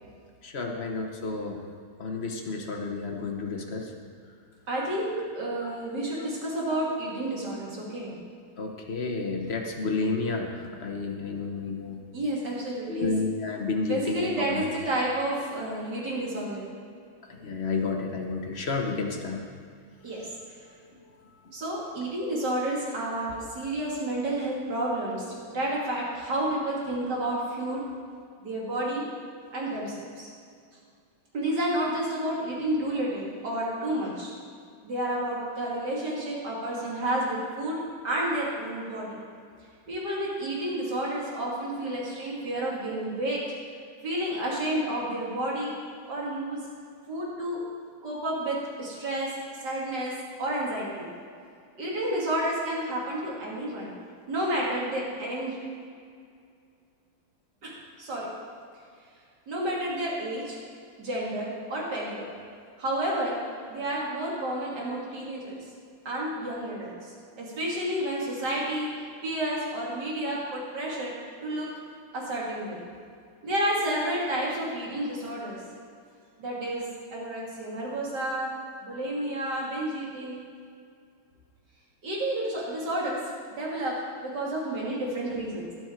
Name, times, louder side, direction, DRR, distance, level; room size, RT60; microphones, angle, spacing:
voice 1, 0.4-1.6 2.0-3.9 8.6-12.0 12.9-14.6 17.4-19.4 21.0-21.1, left 4 dB, 40° left, 2 dB, 1.0 m, -31 dB
voice 2, 4.7-8.1 12.1-13.1 13.8-16.7 20.0-20.6 21.5-27.8 28.4-29.0 29.5-30.3 31.3-34.3 34.8-37.8 38.0-39.2 39.9-43.4 44.0-45.7 46.1-46.6 47.1-47.6 48.0-50.1 50.4-51.1 51.8-53.9 54.3-55.6 57.6-58.3 59.5-60.6 61.0-62.3 62.8-63.4 63.7-65.7 66.0-71.1 71.4-71.7 72.1-72.8 73.4-75.6 76.4-76.9 77.1-78.5 78.8-80.4 82.0-83.2 83.5-85.6, right 1 dB, 55° right, -4 dB, 3.0 m, -30 dB
17.0 x 6.3 x 4.5 m, 2.3 s
omnidirectional pair, 2.2 m